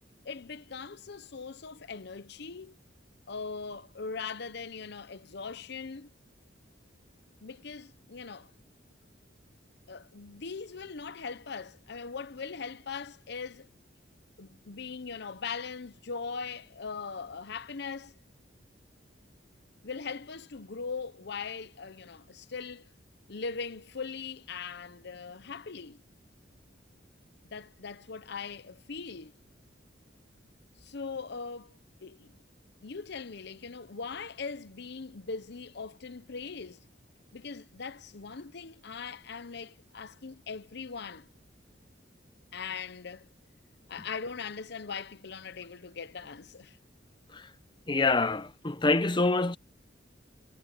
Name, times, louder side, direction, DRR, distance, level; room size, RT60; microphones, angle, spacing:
voice 1, 0.2-2.8 3.3-6.1 7.4-8.5 9.9-13.7 14.4-18.1 19.8-22.9 23.3-26.0 27.5-29.3 30.8-32.3 32.8-36.8 37.3-41.3 42.5-43.3 43.9-46.8, left 5 dB, 65° left, 0.8 m, -40 dB
voice 2, 47.9-49.6, left 3 dB, 25° left, 0.8 m, -26 dB
head